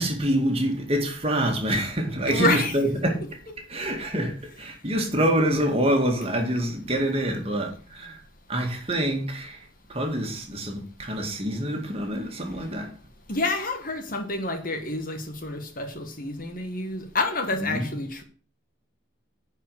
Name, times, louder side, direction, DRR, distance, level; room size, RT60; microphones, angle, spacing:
voice 1, 0.0-3.2 3.7-8.2 8.5-12.9 17.6-17.9, right 1 dB, 30° right, 2.1 m, -26 dB
voice 2, 2.3-2.7 3.0-3.1 13.3-18.2, left 2 dB, 45° left, 1.5 m, -28 dB
11.5 x 5.0 x 6.9 m
head